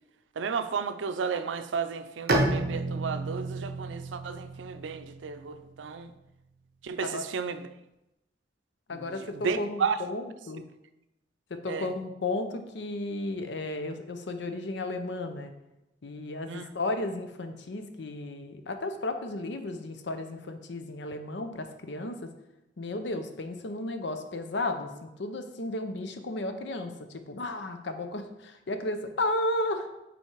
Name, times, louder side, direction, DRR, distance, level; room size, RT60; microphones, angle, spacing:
voice 1, 0.4-6.1 6.8-7.7 8.9-10.0 11.7-11.9 16.5-16.7, right 6 dB, 90° right, 10 dB, 0.5 m, -33 dB
Bowed string instrument, 2.3-5.9, right 2 dB, 55° right, 0.8 m, -31 dB
voice 2, 8.9-10.6 11.5-15.5 16.0-22.3 22.8-29.9, left 2 dB, 75° left, 8 dB, 0.6 m, -34 dB
5.7 x 4.2 x 4.6 m, 0.92 s
head